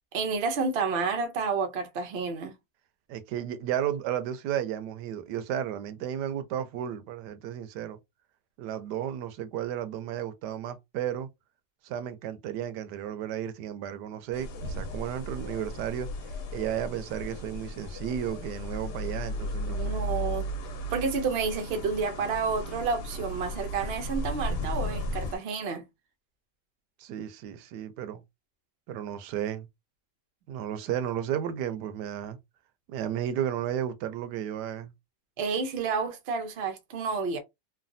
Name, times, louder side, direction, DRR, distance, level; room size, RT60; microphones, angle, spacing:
voice 1, 0.1-2.5 19.7-20.5 20.9-25.8 35.4-37.4, right 4 dB, 60° right, 0.6 m, -30 dB
voice 2, 3.1-8.0 8.6-11.3 11.8-16.1 16.5-20.0 27.0-28.2 28.9-29.7 30.5-32.4 32.9-34.9, right 10 dB, 75° right, 1.1 m, -33 dB
sound 1, 14.3-25.4, equal, 75° left, 1.3 m, -35 dB
3.2 x 2.3 x 2.5 m
omnidirectional pair, 1.8 m